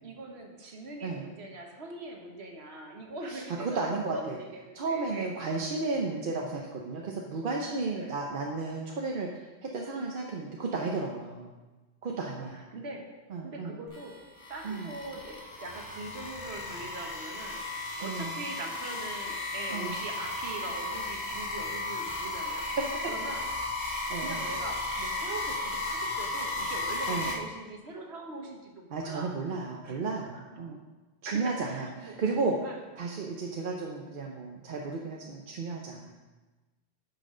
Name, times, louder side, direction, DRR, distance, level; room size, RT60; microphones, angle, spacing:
voice 1, 0.0-5.3 7.9-8.1 12.2-13.1 13.4-14.2 14.5-17.6 18.0-22.7 23.1-23.4 24.2-30.0 30.3-30.6 31.2-32.2 32.6-32.8, right 2 dB, 85° right, 2 dB, 1.5 m, -42 dB
voice 2, 3.3-4.4 4.8-9.3 9.6-11.5 12.0-12.6 13.3-13.8 14.6-14.9 18.0-18.4 19.7-20.0 24.1-24.4 27.1-27.3 28.9-30.8 31.2-32.6 33.0-36.1, right 3 dB, 60° right, 0 dB, 0.9 m, -33 dB
sound 1, 13.9-27.3, left 2 dB, 50° left, 1.6 m, -35 dB
10.0 x 6.0 x 3.8 m, 1.2 s
omnidirectional pair, 1.1 m